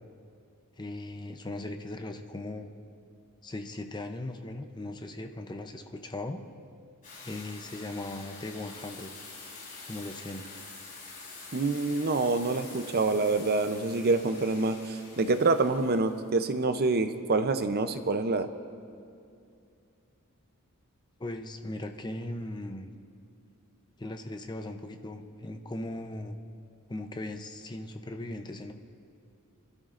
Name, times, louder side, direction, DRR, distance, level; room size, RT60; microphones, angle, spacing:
voice 1, 0.8-2.7 3.4-6.4 7.2-9.1 9.9-10.4 21.2-22.9 24.0-26.4 26.9-28.7, left 1 dB, 20° left, 6 dB, 0.6 m, -38 dB
sound 1, 7.0-16.5, left 3 dB, 40° left, 4.0 m, -47 dB
voice 2, 11.5-18.5, right 3 dB, 45° right, 9 dB, 0.6 m, -26 dB
27.5 x 12.5 x 2.5 m, 2.4 s
head